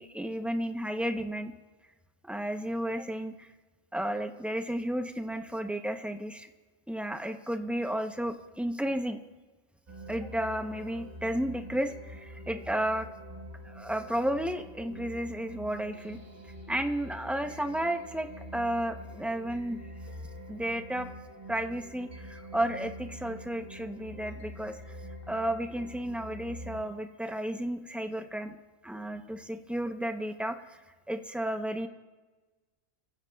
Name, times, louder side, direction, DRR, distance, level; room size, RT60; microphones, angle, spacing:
voice 1, 0.0-1.5 2.3-3.5 3.9-6.5 6.9-9.2 10.1-13.1 13.6-16.2 16.7-19.8 20.5-21.1 21.5-24.8 25.3-28.6 28.8-30.8 31.1-31.9, right 1 dB, ahead, 5 dB, 0.3 m, -33 dB
sound 1, 9.9-27.0, equal, 35° right, 1.6 m, -45 dB
29.5 x 15.5 x 2.3 m, 1.3 s
omnidirectional pair, 1.4 m